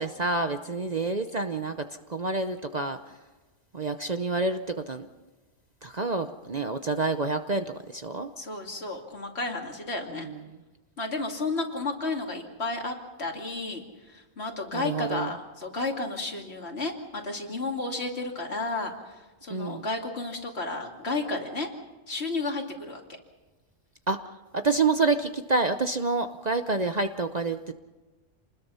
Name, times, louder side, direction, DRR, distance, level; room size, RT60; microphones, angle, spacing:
voice 1, 0.0-1.8 2.1-3.0 3.7-4.6 4.9-5.1 5.8-8.3 14.7-15.3 19.5-19.8 24.1-24.2 24.6-27.7, right 3 dB, 40° right, 8 dB, 0.8 m, -28 dB
voice 2, 8.4-10.3 11.0-13.8 14.1-19.2 19.4-21.7 22.1-23.0, left 3 dB, 55° left, 2 dB, 2.9 m, -32 dB
27.5 x 20.5 x 5.7 m, 1.2 s
omnidirectional pair, 1.3 m